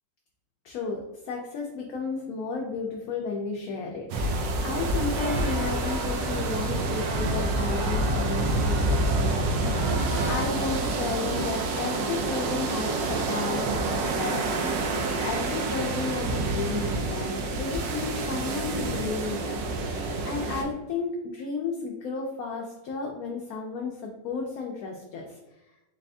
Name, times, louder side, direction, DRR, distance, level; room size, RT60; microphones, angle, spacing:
voice 1, 0.6-19.9 20.2-25.4, left 4 dB, 70° left, 0 dB, 0.9 m, -33 dB
sound 1, 4.1-20.6, right 2 dB, 85° right, 1.3 m, -28 dB
sound 2, 4.7-10.4, right 3 dB, 60° right, 1.0 m, -37 dB
4.1 x 2.5 x 3.3 m, 0.97 s
omnidirectional pair, 1.9 m